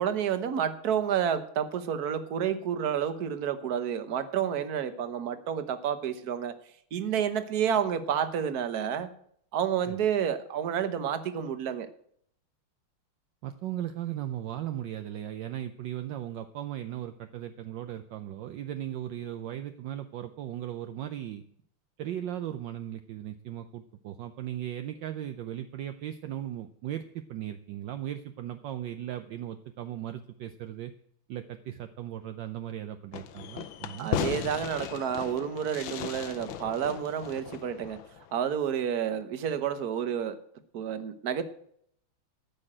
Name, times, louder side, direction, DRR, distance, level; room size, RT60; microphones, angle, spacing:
voice 1, 0.0-6.5 6.9-9.1 9.5-11.9 34.0-38.0 38.3-40.4 40.7-41.4, right 8 dB, 55° right, 10 dB, 1.4 m, -30 dB
voice 2, 13.4-21.4 22.0-30.9 31.3-34.1, right 11 dB, 70° right, 9 dB, 1.3 m, -37 dB
Fireworks, 33.1-38.4, left 10 dB, 75° left, 1.5 m, -36 dB
14.0 x 6.3 x 8.8 m, 0.66 s
omnidirectional pair, 2.3 m